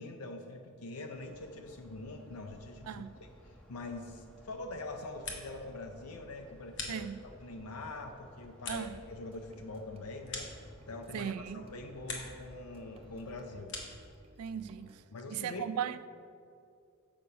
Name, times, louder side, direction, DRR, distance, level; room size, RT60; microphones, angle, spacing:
voice 1, 0.0-3.3 3.7-7.1 7.4-13.7 15.1-15.6, left 2 dB, 85° left, 0.6 m, -44 dB
sound 1, 1.1-13.6, equal, 5° left, 1.0 m, -57 dB
voice 2, 2.9-3.2 6.9-7.2 8.7-8.9 11.1-11.7 14.4-15.0 15.3-16.0, right 8 dB, 85° right, 0.3 m, -37 dB
sound 2, 4.9-5.7 6.0-7.5 7.9-11.2 11.5-12.5 12.8-14.1, left 3 dB, 55° left, 1.2 m, -45 dB
sound 3, 8.8-10.0 10.4-13.4 13.8-15.0, right 1 dB, 25° right, 0.5 m, -57 dB
6.8 x 5.2 x 5.6 m
head